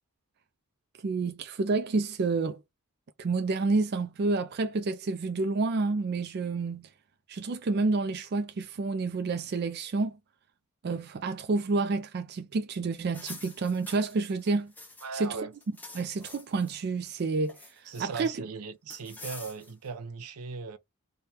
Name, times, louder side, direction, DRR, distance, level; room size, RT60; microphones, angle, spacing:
voice 1, 1.0-2.6 3.2-6.9 7.3-10.2 10.8-14.7 15.1-15.4 15.9-18.3, right 3 dB, 45° right, 0.4 m, -29 dB
sound 1, 13.0-15.2 15.5-16.7 17.1-18.3 18.9-19.9, left 2 dB, 10° left, 0.6 m, -47 dB
voice 2, 15.0-15.5 17.9-20.8, right 4 dB, 90° right, 0.7 m, -38 dB
3.2 x 2.2 x 4.1 m
head